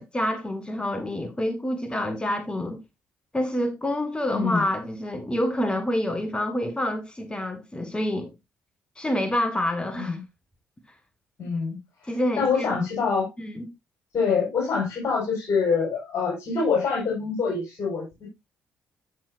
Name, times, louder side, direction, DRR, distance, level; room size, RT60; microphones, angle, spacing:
voice 1, 0.0-2.8 3.3-8.3 9.0-10.2 12.0-12.8 13.4-13.7, left 1 dB, 15° left, 1.7 m, -27 dB
voice 2, 4.3-4.7 10.0-10.2 11.4-11.8 12.3-13.3 14.1-18.3, left 5 dB, 55° left, 5.2 m, -25 dB
12.0 x 6.5 x 2.6 m
figure-of-eight pair, 45°, 6 cm